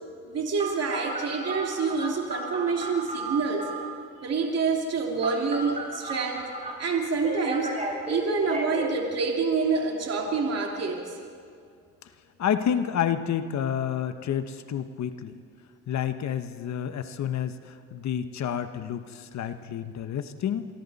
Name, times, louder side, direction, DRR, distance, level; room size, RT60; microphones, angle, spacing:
voice 1, 0.2-3.7 4.2-6.5 6.8-7.7 8.1-11.2, right 4 dB, 55° right, 1 dB, 2.7 m, -27 dB
Telephone, 0.6-3.9 5.2-6.7 7.2-8.9, right 2 dB, 25° right, 6.6 m, -34 dB
voice 2, 12.4-15.4 15.9-20.7, left 9 dB, 65° left, 9 dB, 1.1 m, -29 dB
27.5 x 24.0 x 4.2 m, 2.3 s
cardioid pair, 90°, 30 cm